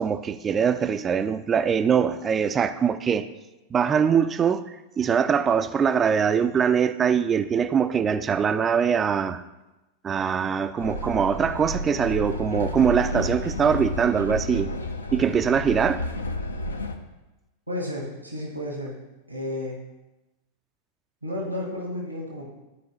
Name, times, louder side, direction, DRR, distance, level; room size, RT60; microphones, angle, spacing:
voice 1, 0.0-3.3 3.7-4.7 5.0-9.4 10.0-14.7 15.1-16.0, right 7 dB, 20° right, 0.4 m, -22 dB
Train, 10.8-17.0, left 1 dB, 75° left, 0.7 m, -31 dB
voice 2, 17.7-19.0 19.3-19.8 21.2-22.5, left 1 dB, 85° right, 1.7 m, -32 dB
12.5 x 4.8 x 3.1 m
figure-of-eight pair, 90°, 0 cm